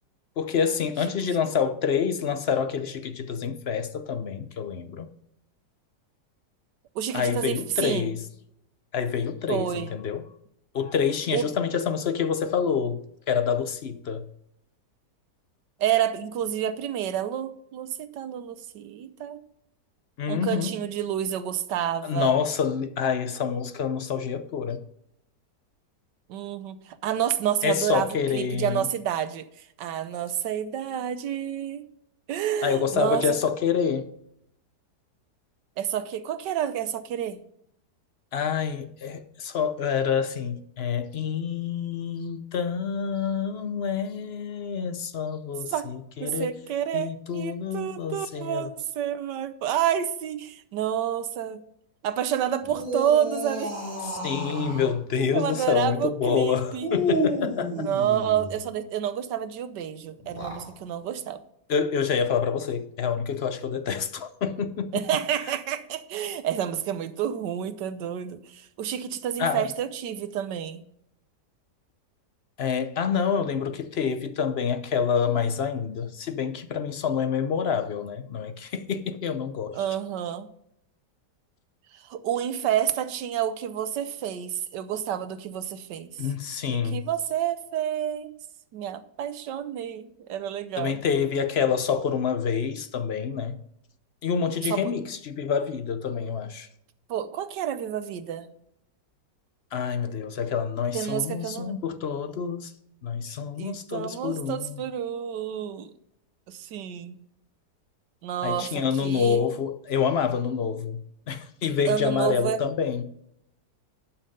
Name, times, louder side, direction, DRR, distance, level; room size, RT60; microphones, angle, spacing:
voice 1, 0.4-5.1 7.1-8.2 8.9-10.2 10.7-13.0 13.3-14.3 20.2-20.7 22.0-24.8 27.6-28.9 32.6-34.1 38.3-46.5 46.9-48.7 54.0-57.9 61.7-65.0 69.4-69.7 72.6-79.8 86.2-87.0 90.8-93.6 94.2-96.7 99.7-102.7 103.0-104.8 108.4-113.0, left 7 dB, 55° left, 0.7 m, -27 dB
voice 2, 6.9-8.1 9.5-9.9 11.3-11.5 15.8-19.4 20.3-22.4 26.3-31.9 32.3-33.2 35.8-37.4 45.7-45.9 46.2-51.6 52.0-53.8 55.2-56.9 57.8-61.4 64.9-70.8 79.7-80.5 81.9-86.1 86.7-88.3 88.7-91.0 94.7-94.9 97.1-98.5 100.9-101.8 103.6-105.9 106.5-107.2 108.2-109.5 111.9-112.6, right 10 dB, 85° right, 1.4 m, -29 dB
sound 1, 52.6-54.9 56.8-58.6 60.2-60.7, equal, 10° left, 3.6 m, -30 dB
11.5 x 5.8 x 5.3 m
omnidirectional pair, 1.8 m